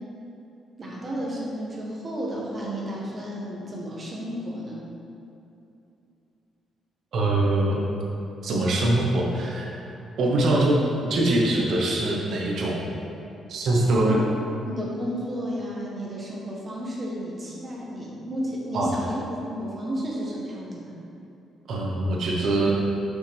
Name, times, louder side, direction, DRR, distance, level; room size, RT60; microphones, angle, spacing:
voice 1, 0.8-4.8 14.0-14.3 14.6-21.0, equal, 35° right, -4 dB, 1.2 m, -32 dB
voice 2, 7.1-7.8 8.4-9.7 10.2-10.8 11.0-12.8 13.5-14.2 18.7-19.0 21.7-22.7, right 2 dB, 65° right, -2 dB, 1.1 m, -23 dB
5.7 x 5.6 x 3.5 m, 2.7 s
cardioid pair, 90°, 0 cm